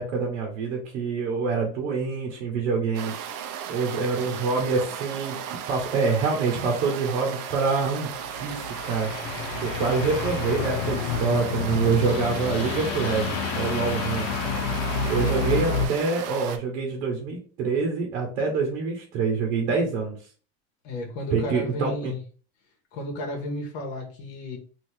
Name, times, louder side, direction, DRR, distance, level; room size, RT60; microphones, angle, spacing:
voice 1, 0.0-3.1 3.7-5.4 5.7-9.1 9.6-14.3 15.0-20.2 21.3-22.1, right 4 dB, 80° right, 1 dB, 1.1 m, -26 dB
sound 1, 2.9-16.6, right 9 dB, 55° right, 0.6 m, -36 dB
sound 2, 8.1-15.9, left 5 dB, 85° left, 0.7 m, -29 dB
voice 2, 20.8-22.2 22.9-24.6, left 1 dB, 65° left, 1 dB, 1.1 m, -33 dB
2.8 x 2.7 x 3.4 m, 0.40 s
supercardioid pair, 100°, 38 cm